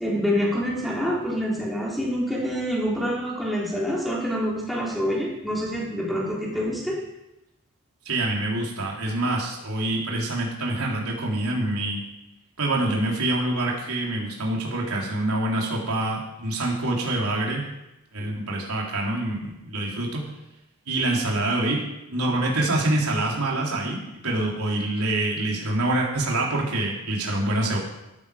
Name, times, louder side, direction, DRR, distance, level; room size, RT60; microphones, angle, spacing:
voice 1, 0.0-7.0, equal, ahead, -5 dB, 3.6 m, -26 dB
voice 2, 8.1-12.0 12.6-17.6 18.1-20.2 20.9-21.8 22.1-27.8, right 2 dB, 85° right, -2 dB, 3.7 m, -26 dB
14.5 x 12.0 x 5.1 m, 0.93 s
head